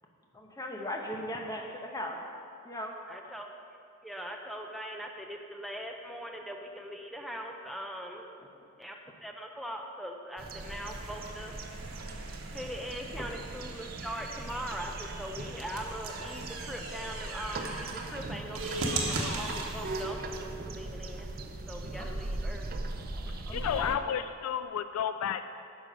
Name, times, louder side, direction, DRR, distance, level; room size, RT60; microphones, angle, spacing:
voice 1, 0.3-2.2 2.6-2.9 3.2-3.3 8.4-8.7 13.2-13.3 19.0-19.1 22.0-22.1 23.0-23.9, left 1 dB, 15° left, 1 dB, 0.9 m, -39 dB
voice 2, 3.1-3.5 4.0-8.3 8.8-11.5 12.5-21.3 21.7-22.7, equal, ahead, 2 dB, 0.5 m, -41 dB
sound 1, 10.4-24.0, right 2 dB, 45° right, 0.6 m, -39 dB
sound 2, 10.6-20.1, right 3 dB, 85° right, 1.1 m, -40 dB
voice 3, 23.3-25.5, left 8 dB, 85° left, 13 dB, 0.3 m, -32 dB
9.9 x 6.2 x 5.0 m, 2.5 s
head